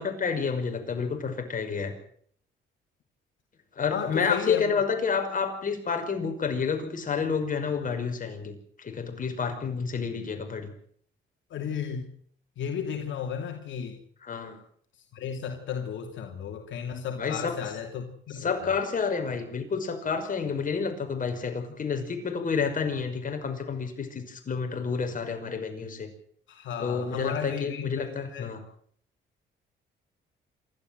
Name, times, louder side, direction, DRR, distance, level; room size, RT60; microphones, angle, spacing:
voice 1, 0.0-1.9 3.8-10.7 14.2-14.6 17.1-17.6 18.4-26.1 26.8-28.6, left 5 dB, 45° left, 5 dB, 5.8 m, -29 dB
voice 2, 3.9-4.8 11.5-12.1 12.6-14.0 15.1-18.8 26.5-28.5, left 7 dB, 70° left, 3 dB, 2.6 m, -34 dB
27.5 x 12.5 x 7.9 m, 0.62 s
cardioid pair, 90°, 20 cm